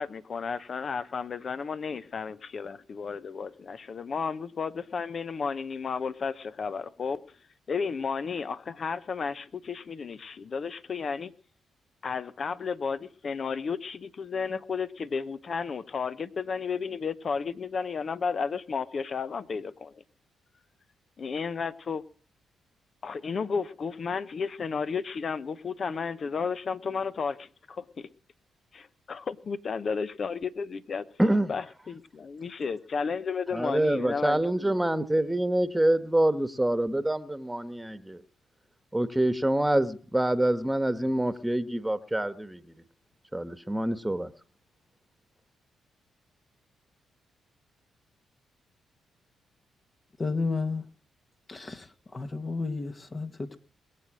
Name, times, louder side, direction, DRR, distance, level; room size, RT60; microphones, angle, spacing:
voice 1, 0.0-7.2 7.7-11.3 12.0-20.0 21.2-22.0 23.0-28.1 28.7-31.0 31.5-34.8, left 5 dB, 55° left, 0.9 m, -33 dB
voice 2, 31.2-31.5 33.5-38.2 38.9-42.6 43.3-44.3, right 1 dB, 10° right, 1.5 m, -26 dB
voice 3, 50.2-50.9 51.5-53.6, left 3 dB, 40° left, 1.7 m, -32 dB
21.5 x 7.7 x 6.3 m
supercardioid pair, 50°, 0 cm